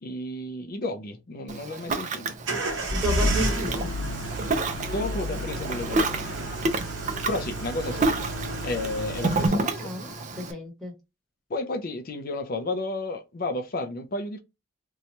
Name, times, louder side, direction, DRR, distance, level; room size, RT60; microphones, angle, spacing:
voice 1, 0.0-2.4 4.7-6.2 7.3-8.3 8.6-9.9 11.5-14.4, left 2 dB, 45° left, 0.5 m, -32 dB
Ocean, 1.5-10.5, right 3 dB, 35° right, 0.4 m, -30 dB
sound 1, 2.4-9.5, right 1 dB, 60° right, 1.0 m, -31 dB
voice 2, 2.9-3.9 9.3-10.9, right 1 dB, ahead, 1.1 m, -33 dB
sound 2, 3.4-10.2, left 2 dB, 80° left, 1.3 m, -43 dB
2.8 x 2.3 x 4.1 m
head